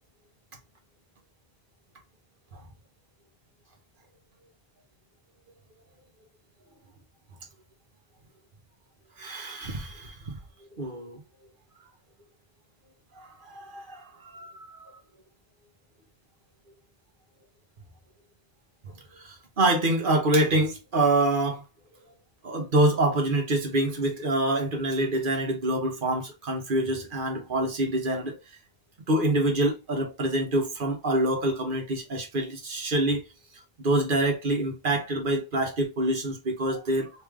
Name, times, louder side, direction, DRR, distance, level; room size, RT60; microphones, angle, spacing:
voice 1, 9.2-10.4 10.7-11.2 13.2-15.0 19.1-21.6 22.4-28.4 29.1-33.2 33.8-37.1, right 1 dB, 60° right, 1.1 m, -26 dB
3.3 x 3.2 x 3.5 m
omnidirectional pair, 1.0 m